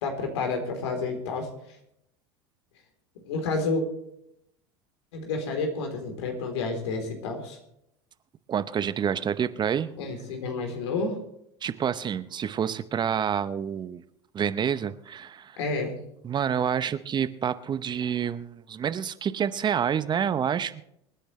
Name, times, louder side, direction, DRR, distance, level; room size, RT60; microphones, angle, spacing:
voice 1, 0.0-1.5 3.2-3.8 5.1-7.6 10.0-11.2 15.6-15.9, left 3 dB, 75° left, 4 dB, 3.7 m, -30 dB
voice 2, 8.5-9.9 11.6-14.0 14.3-15.6 16.2-20.8, right 8 dB, 30° right, 13 dB, 0.8 m, -28 dB
26.0 x 10.0 x 3.3 m, 0.77 s
hypercardioid pair, 85°, 14 cm